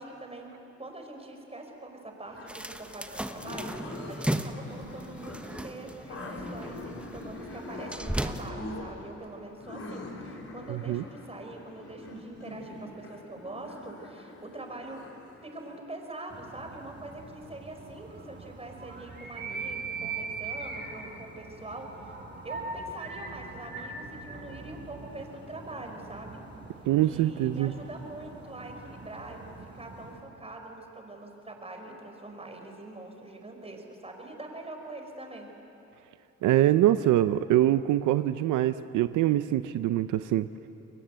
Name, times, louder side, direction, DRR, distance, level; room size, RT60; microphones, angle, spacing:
voice 1, 0.0-15.1 15.4-22.1 22.4-26.5 27.0-35.5, right 2 dB, 20° right, 3 dB, 5.2 m, -44 dB
sound 1, 2.3-15.8, left 2 dB, 50° left, 4.6 m, -43 dB
sound 2, 2.5-8.5, right 1 dB, 5° right, 1.2 m, -36 dB
voice 2, 10.7-11.0 26.8-27.7 36.4-40.5, right 13 dB, 85° right, 12 dB, 0.7 m, -24 dB
sound 3, 16.3-30.2, right 4 dB, 35° right, 6.2 m, -42 dB
29.5 x 21.5 x 8.1 m, 3.0 s
cardioid pair, 90°, 30 cm